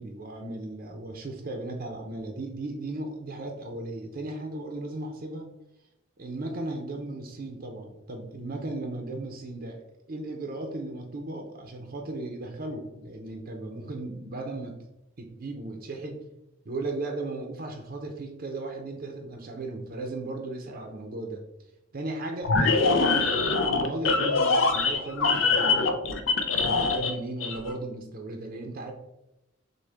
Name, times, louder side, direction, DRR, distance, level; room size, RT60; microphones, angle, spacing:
voice 1, 0.0-5.5 6.2-14.8 15.2-16.2 16.7-21.4 21.9-25.9 26.5-28.9, right 2 dB, 50° right, 3 dB, 0.6 m, -36 dB
sound 1, 22.4-27.1 27.4-27.7, left 4 dB, 75° left, 0.5 m, -23 dB
6.3 x 2.2 x 3.4 m, 0.89 s
head